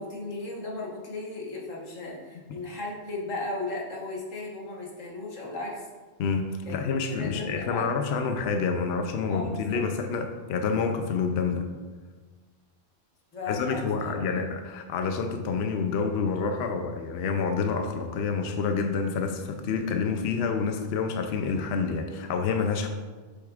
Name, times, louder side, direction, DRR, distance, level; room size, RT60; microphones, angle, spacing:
voice 1, 0.0-5.9 6.6-7.9 9.3-9.8 13.3-14.4, left 2 dB, 85° left, -3 dB, 1.7 m, -36 dB
voice 2, 6.2-11.7 13.5-22.9, left 5 dB, 65° left, 5 dB, 0.8 m, -28 dB
7.7 x 6.5 x 2.4 m, 1.4 s
omnidirectional pair, 1.3 m